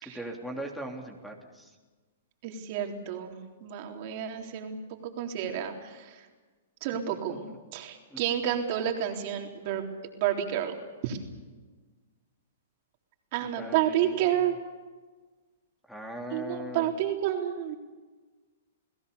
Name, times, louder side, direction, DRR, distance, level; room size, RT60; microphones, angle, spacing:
voice 1, 0.0-1.7 7.3-7.4 8.1-8.2 13.4-14.2 15.9-16.9, right 1 dB, 5° left, 3 dB, 3.3 m, -39 dB
voice 2, 2.4-4.8 5.0-6.2 6.8-7.4 7.7-9.8 10.2-10.8 11.0-11.2 13.3-14.6 16.3-17.8, right 10 dB, 45° right, 3 dB, 3.8 m, -30 dB
30.0 x 18.0 x 7.0 m, 1.3 s
hypercardioid pair, 135°, 0 cm